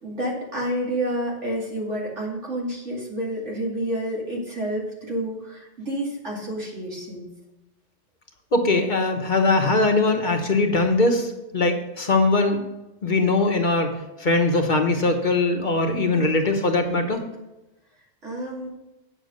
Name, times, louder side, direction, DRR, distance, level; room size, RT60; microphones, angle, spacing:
voice 1, 0.0-7.3 18.2-18.7, right 1 dB, 85° right, -3 dB, 2.9 m, -29 dB
voice 2, 8.5-12.6 13.0-17.2, left 2 dB, 45° left, 4 dB, 1.1 m, -21 dB
8.9 x 6.0 x 6.4 m, 0.97 s
omnidirectional pair, 1.2 m